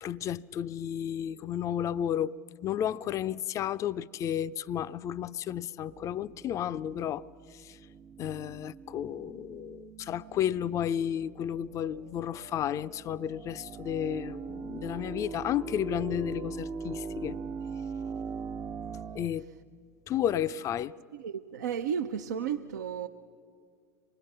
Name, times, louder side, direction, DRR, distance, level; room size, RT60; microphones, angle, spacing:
voice 1, 0.0-2.3 2.6-7.3 7.5-7.8 8.2-17.4 19.1-19.4 20.1-20.9, left 10 dB, 35° left, 0.5 m, -32 dB
sound 1, 5.9-19.3, right 5 dB, 30° right, 0.6 m, -41 dB
voice 2, 21.1-23.1, right 8 dB, 75° right, 0.6 m, -33 dB
26.0 x 20.5 x 6.6 m
figure-of-eight pair, 85°, 10 cm